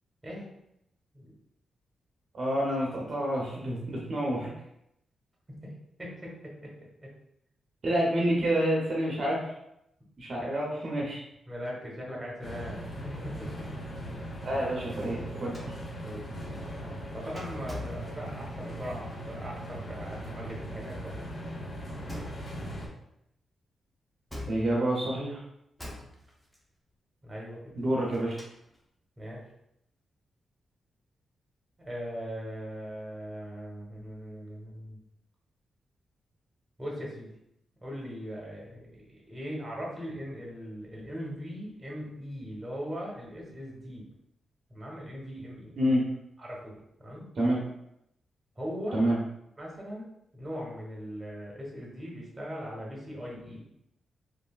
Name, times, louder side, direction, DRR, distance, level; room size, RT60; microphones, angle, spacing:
voice 1, 2.3-4.5 7.8-9.5 10.2-11.2 14.4-15.6 24.5-25.4 27.8-28.4 45.8-46.0 47.4-47.6 48.9-49.2, right 1 dB, 55° right, -4 dB, 0.6 m, -28 dB
voice 2, 6.0-6.7 10.4-10.5 11.5-13.7 16.0-16.2 17.1-21.1 27.2-27.7 29.2-29.4 31.8-35.0 36.8-37.3 37.8-44.1 44.7-45.8 46.4-47.3 48.6-49.0 49.6-53.7, equal, 20° right, -3 dB, 1.1 m, -40 dB
sound 1, 12.4-22.9, equal, 45° left, 0.7 m, -39 dB
sound 2, 15.5-18.7 22.1-22.8 24.3-25.1 25.8-26.6 27.9-28.8, left 1 dB, 5° left, 0.6 m, -44 dB
3.2 x 2.5 x 2.3 m, 0.80 s
cardioid pair, 80°, 0 cm